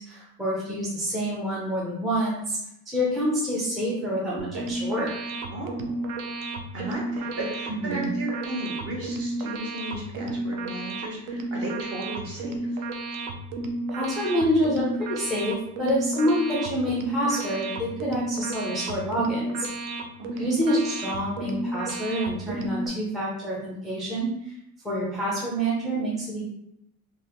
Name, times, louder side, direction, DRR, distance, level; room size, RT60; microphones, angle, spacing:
voice 1, 0.1-2.6 2.9-5.1 7.8-8.1 13.9-19.7 20.4-24.5 24.8-26.4, equal, ahead, -7 dB, 0.4 m, -27 dB
sound 1, 4.4-22.9, right 2 dB, 65° right, 0.6 m, -32 dB
voice 2, 5.5-6.1 6.7-12.8 20.2-20.5, right 2 dB, 40° right, -2 dB, 1.1 m, -35 dB
3.9 x 2.8 x 2.9 m, 0.79 s
cardioid pair, 175°, 35 cm